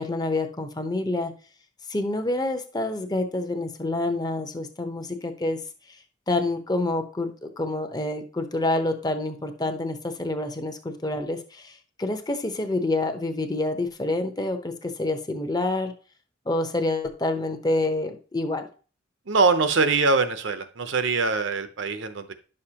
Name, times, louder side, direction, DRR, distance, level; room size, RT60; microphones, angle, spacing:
voice 1, 0.0-1.3 1.9-5.6 5.9-6.0 6.3-15.9 16.5-18.7, left 2 dB, 20° left, 6 dB, 0.8 m, -27 dB
voice 2, 19.3-22.3, right 4 dB, 65° right, 10 dB, 0.7 m, -23 dB
10.5 x 6.5 x 2.9 m, 0.38 s
head